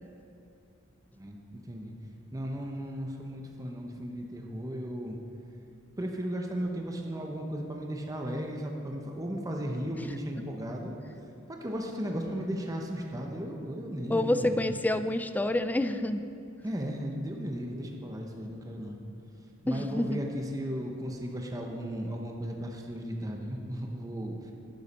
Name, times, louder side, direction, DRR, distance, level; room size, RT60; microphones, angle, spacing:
voice 1, 1.2-1.9 2.3-5.2 6.0-10.9 11.5-14.6 16.6-19.0 19.6-24.5, equal, 15° right, 1 dB, 0.8 m, -35 dB
voice 2, 14.1-16.2 19.7-20.2, left 1 dB, 10° left, 10 dB, 0.3 m, -28 dB
12.0 x 9.5 x 4.2 m, 2.6 s
head